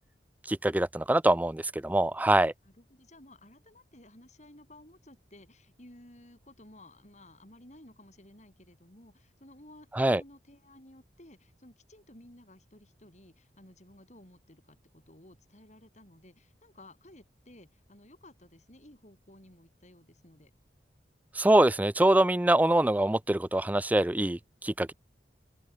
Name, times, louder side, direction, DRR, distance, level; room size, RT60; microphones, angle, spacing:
voice 1, 0.5-2.5 10.0-10.2 21.4-24.9, right 1 dB, 10° right, 0.4 m, -24 dB
voice 2, 2.6-20.5, left 1 dB, 40° left, 6.5 m, -55 dB
open air
head